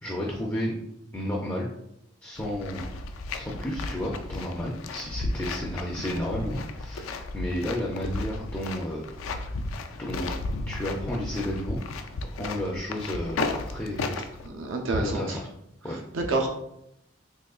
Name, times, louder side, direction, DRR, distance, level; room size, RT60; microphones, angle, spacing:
voice 1, 0.0-0.7 1.1-1.7 2.2-2.9 3.3-9.2 10.0-10.3 10.7-11.8 12.2-14.2 14.9-15.5 15.8-16.0, left 1 dB, 10° left, -3 dB, 0.3 m, -32 dB
sound 1, 2.4-14.5, left 3 dB, 90° left, 0.3 m, -34 dB
voice 2, 14.4-15.4 16.1-16.5, right 2 dB, 75° right, 2 dB, 0.4 m, -27 dB
3.7 x 3.0 x 2.3 m, 0.80 s
head